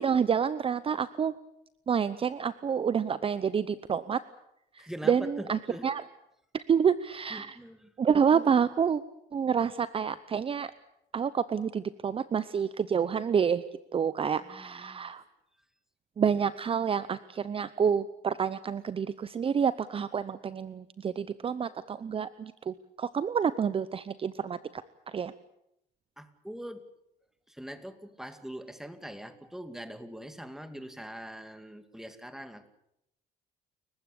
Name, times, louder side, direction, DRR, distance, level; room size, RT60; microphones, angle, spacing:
voice 1, 0.0-1.3 1.9-4.2 4.8-6.0 6.5-7.6 8.0-9.0 9.3-10.7 11.1-13.6 13.9-15.2 16.2-24.8 25.1-25.3, right 7 dB, 35° right, 15 dB, 0.8 m, -28 dB
voice 2, 4.8-5.9 7.3-7.9 14.4-15.2 26.2-26.8 27.5-32.7, equal, ahead, 9 dB, 2.4 m, -43 dB
29.5 x 15.5 x 8.5 m, 0.81 s
cardioid pair, 110°, 17 cm